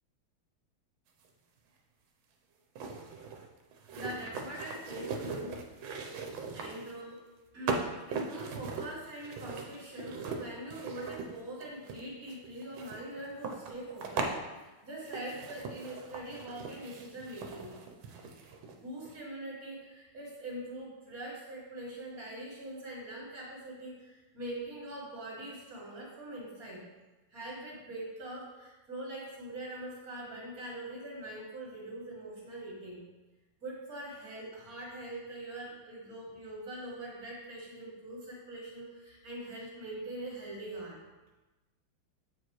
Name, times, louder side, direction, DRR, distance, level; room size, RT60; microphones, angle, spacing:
sound 1, 1.2-1.3 2.8-7.0 7.7-14.4 15.0-18.8 19.1-19.2, right 4 dB, 80° right, 1.5 m, -39 dB
voice 1, 3.9-5.6 6.5-7.2 7.5-17.8 18.7-26.8 27.3-33.0 33.6-41.0, right 1 dB, 45° right, -4 dB, 2.0 m, -43 dB
8.1 x 4.7 x 3.1 m, 1.1 s
omnidirectional pair, 2.2 m